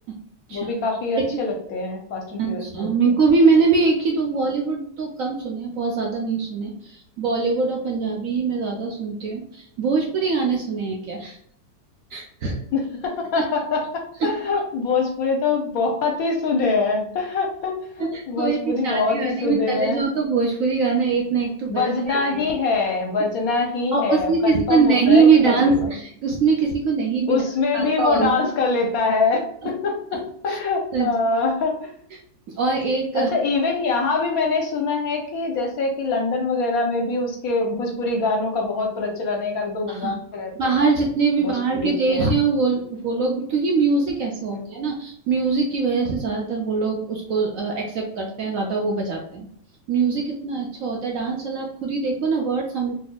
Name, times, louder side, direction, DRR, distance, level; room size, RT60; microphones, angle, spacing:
voice 1, 0.5-3.0 12.7-20.0 21.7-25.9 27.3-31.9 33.1-40.9 41.4-42.3 44.8-44.9, left 3 dB, 65° left, 2 dB, 1.0 m, -24 dB
voice 2, 2.4-11.4 12.1-12.6 13.5-13.6 14.2-14.3 18.0-22.5 23.9-27.4 27.7-28.3 30.5-30.6 30.9-31.1 32.5-33.3 39.9-40.2 40.6-49.5 49.9-52.9, right 4 dB, 65° right, 0 dB, 0.8 m, -22 dB
4.1 x 2.8 x 2.2 m, 0.67 s
omnidirectional pair, 1.9 m